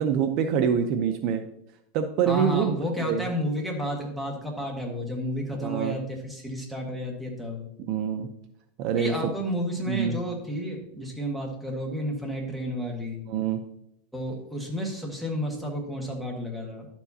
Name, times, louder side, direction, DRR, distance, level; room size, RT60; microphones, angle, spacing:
voice 1, 0.0-1.4 1.9-3.3 5.6-6.0 7.9-8.3 8.8-9.1 9.9-10.2 13.2-13.6, right 7 dB, 45° right, 7 dB, 0.6 m, -25 dB
voice 2, 2.3-7.6 9.0-13.2 14.1-16.9, equal, ahead, -1 dB, 1.6 m, -31 dB
11.0 x 7.2 x 2.8 m, 0.76 s
supercardioid pair, 155°, 0 cm